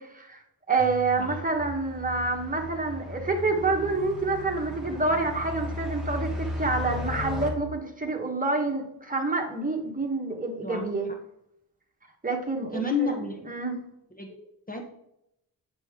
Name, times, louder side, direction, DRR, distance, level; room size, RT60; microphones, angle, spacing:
voice 1, 0.0-11.1 12.2-13.1 13.5-13.8, right 3 dB, 20° right, 2 dB, 1.4 m, -28 dB
sound 1, 0.8-7.5, left 2 dB, ahead, 1.9 m, -36 dB
voice 2, 12.7-13.4 14.1-14.8, left 3 dB, 20° left, 2 dB, 1.0 m, -30 dB
9.0 x 6.9 x 3.7 m, 0.79 s
wide cardioid pair, 130°, 39 cm